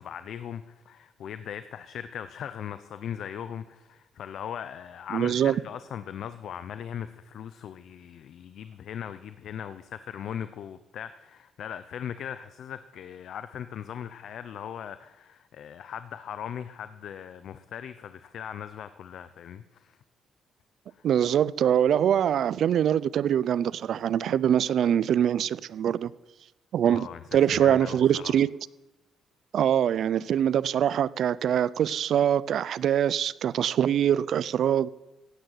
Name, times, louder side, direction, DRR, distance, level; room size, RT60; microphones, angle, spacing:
voice 1, 0.0-20.0 20.9-21.0 26.9-28.3, left 9 dB, 70° left, 0.7 m, -39 dB
voice 2, 5.1-5.6 21.0-26.1 26.7-28.5 29.5-34.9, right 9 dB, 65° right, 0.5 m, -24 dB
16.0 x 9.0 x 8.0 m
cardioid pair, 90°, 0 cm